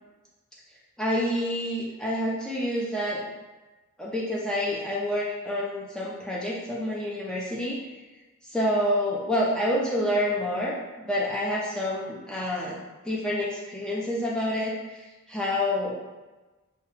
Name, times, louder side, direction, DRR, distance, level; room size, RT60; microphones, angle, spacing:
voice 1, 1.0-3.3 4.0-7.8 8.5-12.8 13.0-16.0, left 1 dB, 5° left, -6 dB, 0.3 m, -28 dB
2.2 x 2.0 x 3.0 m, 1.2 s
head